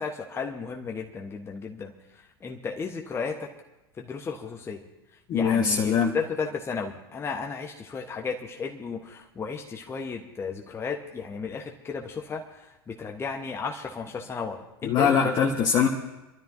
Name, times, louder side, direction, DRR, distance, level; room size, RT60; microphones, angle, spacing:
voice 1, 0.0-1.9 2.4-3.5 4.0-4.8 5.3-15.4, left 5 dB, 20° left, 2 dB, 1.2 m, -34 dB
voice 2, 5.3-6.1 14.8-15.9, left 7 dB, 35° left, 0 dB, 1.5 m, -22 dB
27.0 x 13.0 x 2.8 m, 1.0 s
figure-of-eight pair, 80°, 13 cm